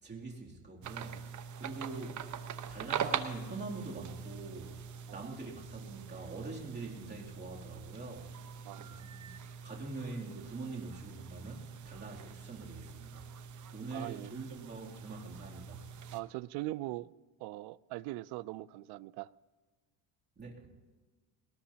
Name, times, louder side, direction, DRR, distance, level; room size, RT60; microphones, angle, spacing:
voice 1, 0.0-2.3 2.7-4.8 5.1-8.3 8.8-9.3 9.6-13.3 13.7-15.9 20.4-20.7, right 3 dB, 25° right, -2 dB, 2.8 m, -44 dB
sound 1, 0.8-16.2, right 7 dB, 45° right, 1.0 m, -43 dB
voice 2, 8.6-9.0 13.9-14.3 16.1-17.1 17.4-19.3, right 18 dB, 65° right, 21 dB, 0.5 m, -41 dB
21.0 x 19.0 x 2.9 m, 1.3 s
cardioid pair, 115°, 42 cm